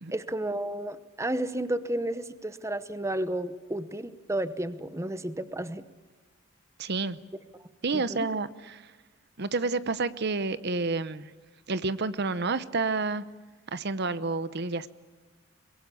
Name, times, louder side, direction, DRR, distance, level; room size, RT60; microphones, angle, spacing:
voice 1, 0.1-5.8 7.9-8.3, right 1 dB, 15° right, 13 dB, 0.9 m, -32 dB
voice 2, 6.8-7.2 7.8-8.9 9.4-11.3 11.7-13.2 13.7-14.9, right 3 dB, 55° right, 14 dB, 0.9 m, -29 dB
23.5 x 22.0 x 8.4 m, 1.3 s
head